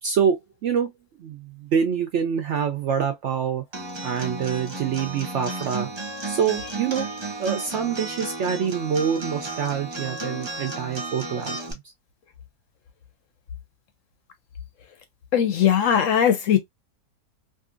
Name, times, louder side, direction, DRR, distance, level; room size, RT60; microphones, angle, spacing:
voice 1, 0.0-0.9 1.2-3.6 4.0-5.9 6.2-7.1 7.4-11.8, right 7 dB, 65° right, 0.7 m, -26 dB
Acoustic guitar, 3.7-11.7, right 2 dB, 45° right, 0.3 m, -33 dB
voice 2, 15.3-16.6, left 9 dB, 70° left, 0.8 m, -19 dB
2.7 x 2.6 x 2.4 m
omnidirectional pair, 1.6 m